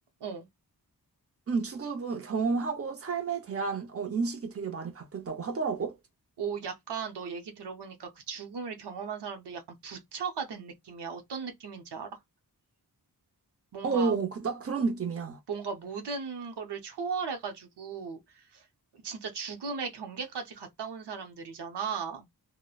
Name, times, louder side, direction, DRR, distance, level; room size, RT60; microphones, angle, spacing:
voice 1, 1.5-6.0 13.8-15.4, right 4 dB, 35° right, 0.7 m, -31 dB
voice 2, 6.4-12.2 13.7-14.1 15.5-18.7 18.9-22.3, right 6 dB, 90° right, 0.7 m, -37 dB
2.9 x 2.1 x 2.3 m
wide cardioid pair, 70°, 39 cm